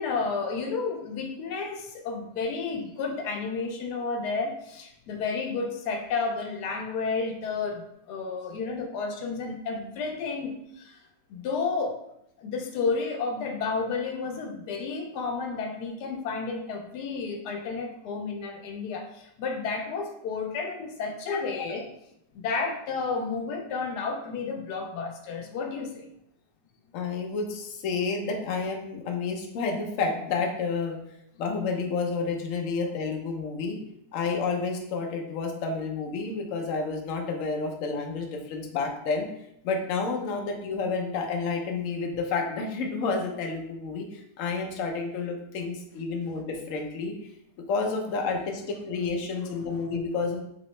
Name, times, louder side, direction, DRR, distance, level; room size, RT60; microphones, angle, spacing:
voice 1, 0.0-11.0 11.3-12.0 12.4-21.9 22.3-26.1 49.4-49.5, left 4 dB, 85° left, 3 dB, 1.2 m, -31 dB
voice 2, 26.9-31.0 31.4-33.8 34.1-39.3 39.6-47.1 47.7-50.4, left 4 dB, 65° left, 2 dB, 0.9 m, -30 dB
3.7 x 3.0 x 3.1 m, 0.77 s
omnidirectional pair, 1.7 m